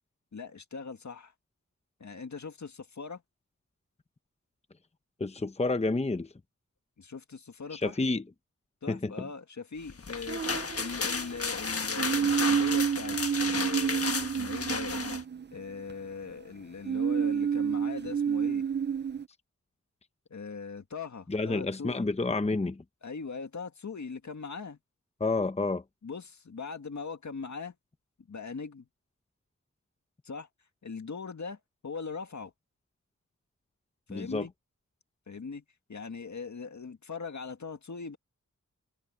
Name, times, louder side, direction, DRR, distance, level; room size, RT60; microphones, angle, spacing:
voice 1, 0.3-1.3 2.0-3.2 7.0-8.0 8.8-15.0 15.5-18.6 20.3-22.1 23.0-24.8 26.0-27.7 28.2-28.9 30.2-30.5 30.8-32.5 34.1-34.5 35.3-35.6 35.9-38.2, left 5 dB, 70° left, 1.9 m, -40 dB
voice 2, 5.2-6.3 7.7-8.2 8.9-9.1 21.3-22.8 25.2-25.8 34.1-34.5, left 3 dB, 20° left, 0.8 m, -29 dB
sound 1, 9.9-15.2, left 4 dB, 50° left, 1.4 m, -33 dB
sound 2, 10.3-11.3 12.0-15.9 16.8-19.2, right 7 dB, 35° right, 0.5 m, -29 dB
wide cardioid pair, 100°, 30 cm